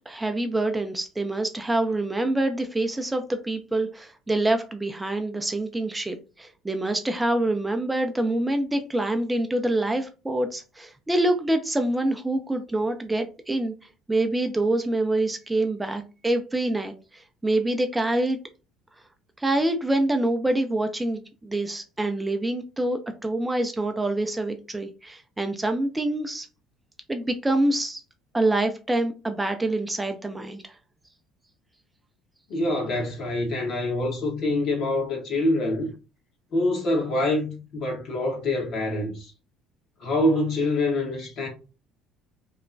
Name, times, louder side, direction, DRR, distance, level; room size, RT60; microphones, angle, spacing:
voice 1, 0.1-13.7 14.1-18.4 19.4-26.5 27.1-28.0 28.3-30.7, right 1 dB, 15° right, 0.4 m, -26 dB
voice 2, 32.5-35.9 36.5-39.3 40.0-41.5, left 1 dB, 60° left, 1.2 m, -25 dB
3.0 x 2.1 x 2.5 m
hypercardioid pair, 65°, 0 cm